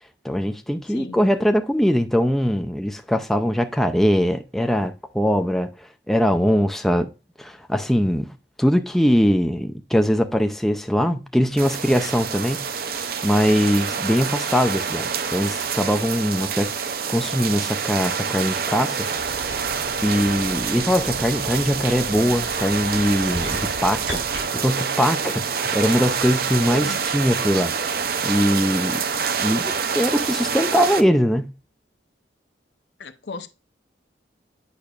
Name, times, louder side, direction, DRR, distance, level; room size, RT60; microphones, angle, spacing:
voice 1, 0.2-5.7 6.1-7.1 7.4-8.3 8.6-16.7 17.1-19.1 19.4-19.5 20.0-24.2 24.5-27.7 28.2-29.1 29.4-31.5, equal, ahead, 0.5 m, -21 dB
sound 1, 11.6-31.0, right 6 dB, 55° right, 0.6 m, -27 dB
sound 2, 19.2-24.5, right 1 dB, 75° right, 4.2 m, -36 dB
voice 2, 26.7-27.0 33.0-33.5, left 3 dB, 70° left, 0.7 m, -35 dB
8.5 x 5.9 x 2.4 m
head